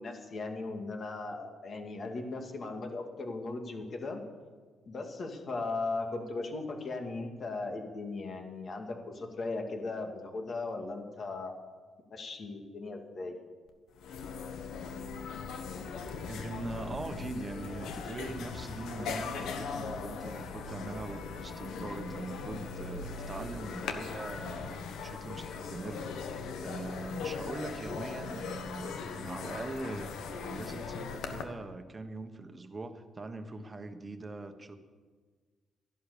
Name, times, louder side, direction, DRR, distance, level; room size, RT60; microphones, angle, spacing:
voice 1, 0.0-4.2 4.9-11.5 12.1-13.4, left 3 dB, 45° left, 3 dB, 2.3 m, -37 dB
sound 1, 13.7-13.8 14.0-31.4, left 5 dB, 80° left, 1.3 m, -39 dB
voice 2, 16.3-26.1 26.6-34.8, right 2 dB, 25° right, 8 dB, 1.3 m, -41 dB
13.5 x 11.0 x 6.9 m, 1.5 s
cardioid pair, 90°, 0 cm